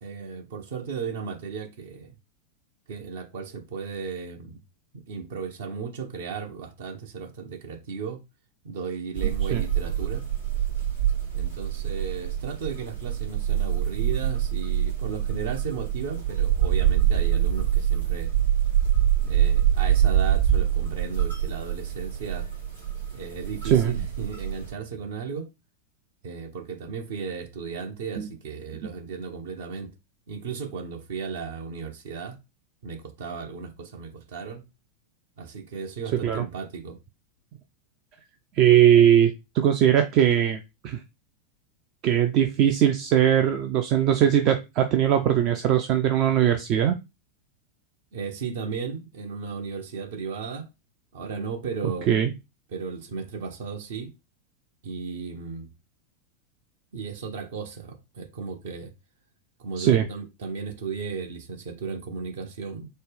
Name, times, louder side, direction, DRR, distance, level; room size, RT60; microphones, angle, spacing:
voice 1, 0.0-2.1 2.9-4.6 4.9-8.2 8.6-10.2 11.3-18.3 19.2-22.5 23.1-25.5 26.2-29.9 30.3-32.4 32.8-34.6 35.4-37.0 48.1-50.7 51.1-52.1 52.7-54.1 54.8-55.7 56.9-58.9 59.6-62.9, right 5 dB, 55° right, 0.7 m, -35 dB
sound 1, 9.1-24.7, right 10 dB, 85° right, 1.7 m, -25 dB
voice 2, 38.5-41.0 42.0-47.0 52.1-52.3 59.8-60.0, right 10 dB, 40° right, 0.4 m, -20 dB
4.2 x 2.1 x 3.3 m
figure-of-eight pair, 90°, 0 cm